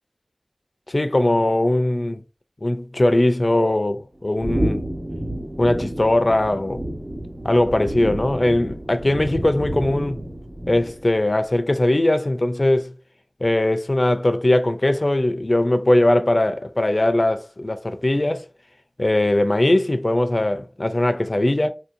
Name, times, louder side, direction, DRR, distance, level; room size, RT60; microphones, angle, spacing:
voice 1, 0.9-2.2 2.6-4.8 5.6-6.8 7.4-10.2 10.7-12.9 13.4-18.4 19.0-21.7, left 1 dB, 50° left, 0.5 m, -20 dB
sound 1, 4.4-11.2, right 1 dB, 40° right, 1.1 m, -29 dB
4.2 x 2.7 x 2.5 m
wide cardioid pair, 45°, 0 cm